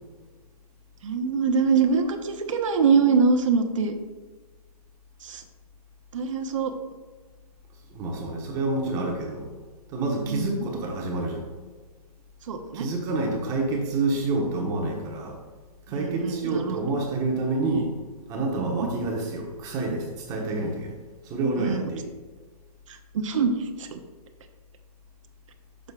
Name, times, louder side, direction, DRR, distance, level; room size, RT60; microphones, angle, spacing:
voice 1, 1.0-4.0 5.2-5.4 6.1-6.7 10.3-10.6 12.5-12.9 15.9-16.8 18.6-18.9 21.6-21.9 22.9-24.0, right 5 dB, 55° right, 5 dB, 0.9 m, -24 dB
voice 2, 7.9-9.5 9.9-11.4 12.7-15.4 15.9-17.9 18.3-20.9 21.2-22.1, right 2 dB, 15° right, 0 dB, 1.1 m, -28 dB
10.5 x 6.4 x 2.4 m, 1.4 s
hypercardioid pair, 155°, 20 cm